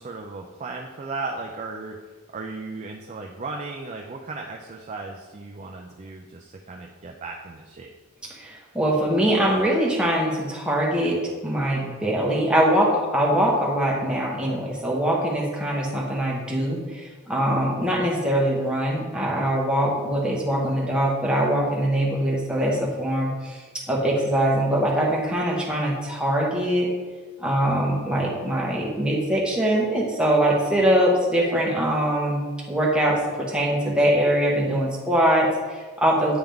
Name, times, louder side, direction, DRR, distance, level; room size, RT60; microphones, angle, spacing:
voice 1, 0.0-2.0 2.3-7.9, right 3 dB, 30° right, 1 dB, 0.4 m, -36 dB
voice 2, 8.3-26.9 27.4-36.4, right 1 dB, 5° right, -4 dB, 1.1 m, -23 dB
8.9 x 3.6 x 3.5 m, 1.4 s
head